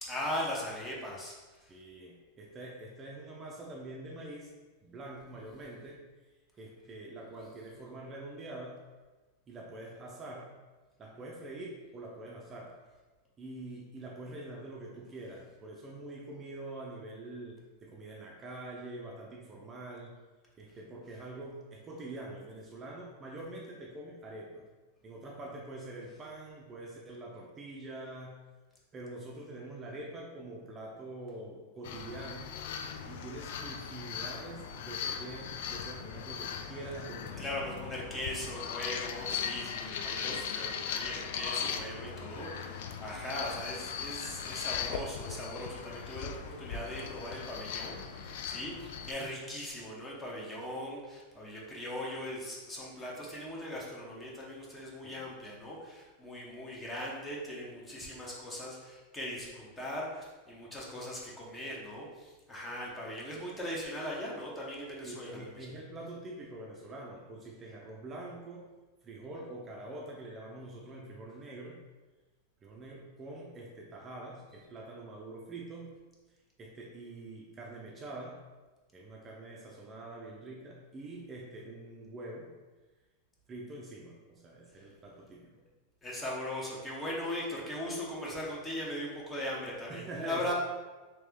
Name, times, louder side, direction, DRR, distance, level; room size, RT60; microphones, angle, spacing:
voice 1, 0.0-1.7 37.4-65.7 86.0-90.5, left 1 dB, 15° left, -4 dB, 1.0 m, -39 dB
voice 2, 1.7-4.5 4.8-6.0 6.6-8.8 9.5-10.5 11.0-12.8 13.4-20.2 20.6-24.6 25.0-28.4 28.9-32.5 33.1-37.5 38.1-38.3 48.5-48.6 55.0-55.2 65.0-68.7 69.0-71.8 72.6-75.9 76.6-78.4 78.9-82.5 83.5-85.6 89.9-90.5, right 2 dB, 25° right, -2 dB, 0.6 m, -45 dB
sound 1, 31.8-49.1, left 7 dB, 70° left, 0.3 m, -39 dB
3.1 x 2.9 x 3.6 m, 1.2 s
hypercardioid pair, 125°, 0 cm